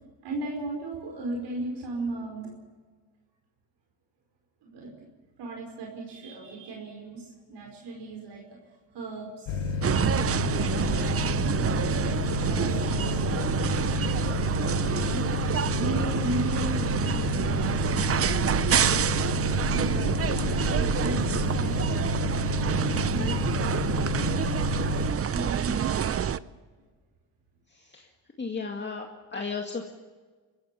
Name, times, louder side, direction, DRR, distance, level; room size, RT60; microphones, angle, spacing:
voice 1, 0.2-2.5 4.6-5.1 5.4-8.4 8.9-9.7 10.3-15.2 15.8-17.9 19.2-22.5 23.1-24.5 25.3-26.2, right 2 dB, 65° right, 0 dB, 5.1 m, -37 dB
sound 1, 9.5-25.1, left 4 dB, 85° left, 5.5 m, -30 dB
sound 2, 9.8-26.4, right 8 dB, 35° right, 0.7 m, -27 dB
voice 2, 27.7-28.1 28.4-29.9, left 4 dB, 25° left, 2 dB, 2.2 m, -35 dB
25.5 x 15.5 x 7.0 m, 1.4 s
cardioid pair, 100°, 43 cm